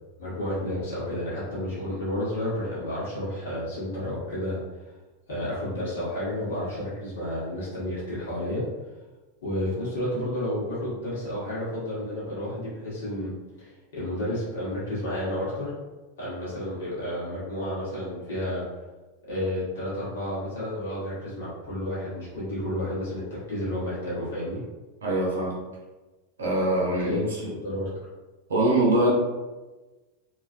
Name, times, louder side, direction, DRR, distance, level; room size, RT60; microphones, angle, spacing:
voice 1, 0.2-4.6 5.3-8.6 9.4-15.7 16.2-18.6 19.3-24.6 27.0-27.9, left 1 dB, 75° left, -8 dB, 1.4 m, -31 dB
voice 2, 25.0-25.6 26.4-27.5 28.5-29.1, right 1 dB, 85° right, -3 dB, 0.7 m, -23 dB
2.9 x 2.4 x 2.6 m, 1.2 s
hypercardioid pair, 95°, 0 cm